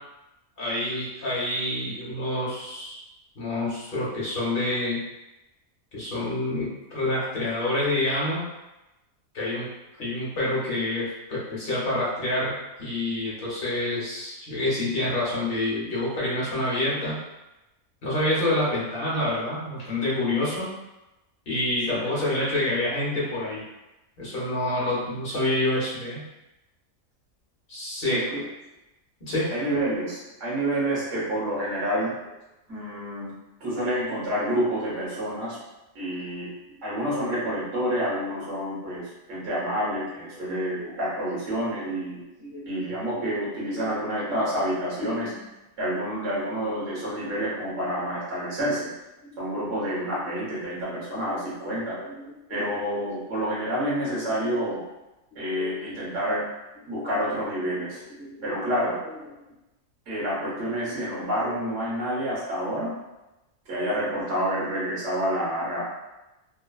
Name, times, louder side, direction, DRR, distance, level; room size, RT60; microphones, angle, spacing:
voice 1, 0.6-3.0 3.3-5.0 5.9-8.4 9.3-9.7 10.0-17.2 18.0-20.7 21.5-23.6 24.2-26.2 27.7-28.2 29.2-29.5 36.7-36.8 40.4-40.5 40.7-40.9 42.4-43.4 43.8-43.9 44.3-44.7 45.0-45.4 47.7-47.8 51.9-52.2 52.5-52.6 55.3-55.8 57.0-57.1 58.1-58.5 61.4-61.6, left 1 dB, 50° left, -6 dB, 0.9 m, -28 dB
voice 2, 28.0-28.4 29.5-32.1 32.7-33.3 33.6-35.6 35.9-36.5 36.8-42.2 42.6-45.3 45.8-48.9 49.4-52.0 52.5-54.8 55.3-56.4 56.9-58.0 58.4-59.0 60.1-62.9 63.7-65.9, equal, 65° right, -7 dB, 1.4 m, -28 dB
3.0 x 2.1 x 2.2 m, 0.99 s
omnidirectional pair, 1.4 m